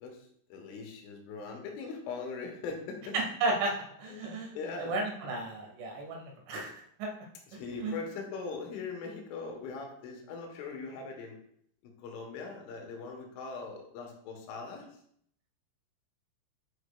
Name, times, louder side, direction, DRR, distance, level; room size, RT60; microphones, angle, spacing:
voice 1, 0.0-3.2 4.1-4.9 7.5-11.4 11.8-15.0, left 4 dB, 85° left, 2 dB, 3.6 m, -41 dB
voice 2, 3.1-6.7 7.0-7.1 7.8-8.0, right 2 dB, 80° right, 0 dB, 3.7 m, -33 dB
9.6 x 5.0 x 2.2 m, 0.66 s
omnidirectional pair, 5.6 m